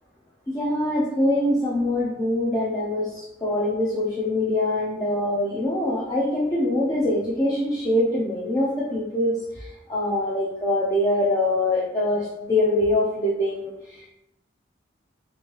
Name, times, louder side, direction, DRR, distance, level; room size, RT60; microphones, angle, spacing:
voice 1, 0.5-9.3 9.9-13.7, left 1 dB, 20° left, -5 dB, 0.4 m, -23 dB
3.0 x 2.6 x 2.9 m, 0.90 s
head